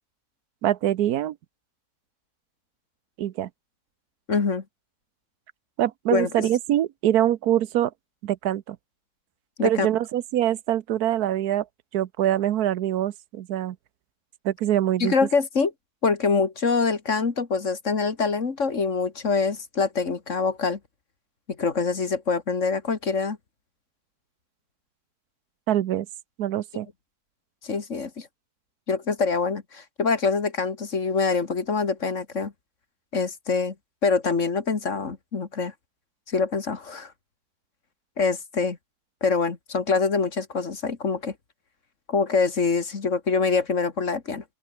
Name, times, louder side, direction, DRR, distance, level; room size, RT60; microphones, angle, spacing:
voice 1, 0.6-1.4 3.2-3.5 5.8-7.9 8.2-8.8 9.6-11.6 11.9-13.8 14.4-15.1 25.7-26.1 26.4-26.9, right 12 dB, 80° right, 1.3 m, -24 dB
voice 2, 4.3-4.6 6.1-6.5 9.6-9.9 15.0-15.7 16.0-20.8 21.6-23.4 27.6-28.3 28.9-32.5 33.1-33.7 34.0-35.7 36.3-37.1 38.2-38.8 39.2-41.3 42.1-44.4, left 4 dB, 50° left, 2.3 m, -25 dB
omnidirectional pair, 1.6 m